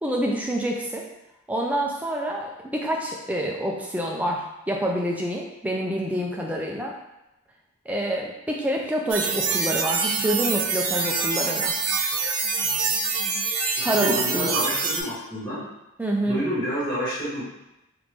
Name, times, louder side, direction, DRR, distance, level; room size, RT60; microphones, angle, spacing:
voice 1, 0.0-1.0 1.5-6.9 7.9-11.7 13.8-14.6 16.0-16.4, right 1 dB, 5° right, -1 dB, 0.3 m, -27 dB
sound 1, 9.1-15.0, right 5 dB, 85° right, 0.5 m, -25 dB
voice 2, 13.8-15.6 16.2-17.4, equal, 20° left, -10 dB, 1.4 m, -29 dB
3.4 x 2.5 x 3.2 m, 0.92 s
head